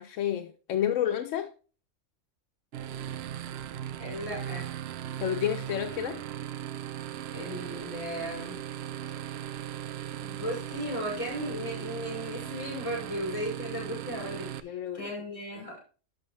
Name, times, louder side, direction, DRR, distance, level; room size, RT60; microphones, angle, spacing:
voice 1, 0.0-1.5 5.2-6.2 14.6-15.1 15.6-15.7, left 10 dB, 80° left, 1.0 m, -30 dB
sound 1, 2.7-14.6, right 11 dB, 65° right, 0.7 m, -38 dB
voice 2, 4.0-4.7 7.3-8.6 10.1-15.8, equal, 25° left, 5.2 m, -36 dB
11.5 x 6.1 x 3.1 m
omnidirectional pair, 1.3 m